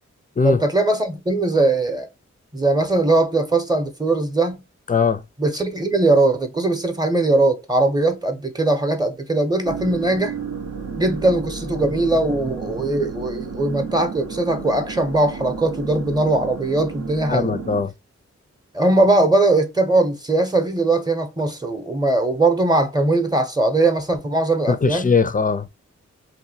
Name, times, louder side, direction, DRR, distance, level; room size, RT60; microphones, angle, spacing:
voice 1, 0.4-2.1 2.5-4.6 5.4-10.3 11.0-17.6 18.7-25.1, right 2 dB, 15° right, 0.8 m, -20 dB
voice 2, 4.9-5.2 17.3-17.9 24.7-25.7, left 5 dB, 30° left, 0.4 m, -20 dB
sound 1, 9.6-17.8, right 5 dB, 70° right, 0.7 m, -32 dB
2.7 x 2.2 x 2.7 m
cardioid pair, 55°, 30 cm